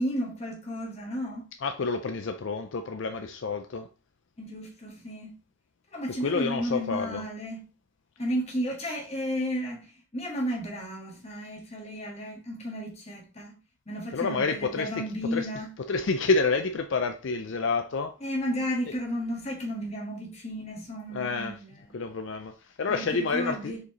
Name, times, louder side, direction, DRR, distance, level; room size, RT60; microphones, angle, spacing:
voice 1, 0.0-1.4 4.4-5.3 5.9-7.6 8.2-13.5 13.9-15.7 18.2-21.8 22.9-23.8, equal, 30° left, 1.6 m, -33 dB
voice 2, 1.6-3.9 6.2-7.2 14.1-14.9 15.3-15.5 15.9-18.1 21.1-21.6 21.9-23.7, left 4 dB, 60° left, 0.4 m, -28 dB
6.7 x 4.8 x 3.0 m
head